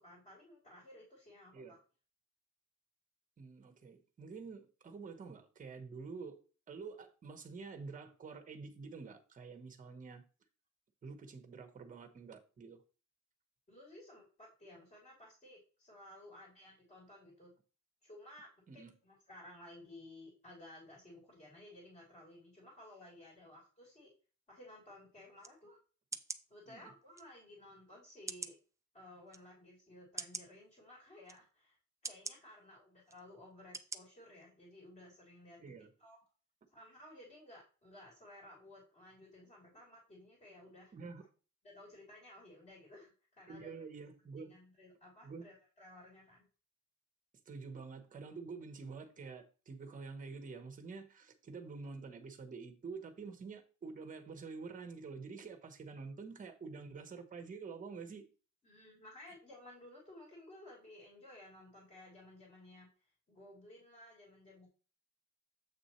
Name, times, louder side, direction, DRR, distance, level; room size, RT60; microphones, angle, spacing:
voice 1, 0.0-1.8 13.7-17.5 18.0-24.1 24.5-25.8 26.5-28.5 28.9-31.8 32.0-35.7 36.0-36.2 36.7-40.9 41.6-43.7 44.4-46.5 58.6-62.9 63.3-64.7, left 1 dB, 25° left, 3.3 m, -56 dB
voice 2, 3.4-6.4 6.7-10.2 11.0-12.8 18.7-18.9 26.7-26.9 35.6-35.9 40.9-41.2 43.5-44.6 45.2-45.5 47.5-58.2, right 4 dB, 25° right, 1.1 m, -48 dB
sound 1, 25.4-25.5 26.1-26.4 27.2-27.3 28.3-28.6 29.3-29.4 30.2-30.5 31.3-31.4 32.0-32.4 33.1-33.2 33.7-34.0 34.4-34.5, right 4 dB, 10° right, 0.3 m, -43 dB
7.8 x 6.1 x 3.1 m
cardioid pair, 175°, 29 cm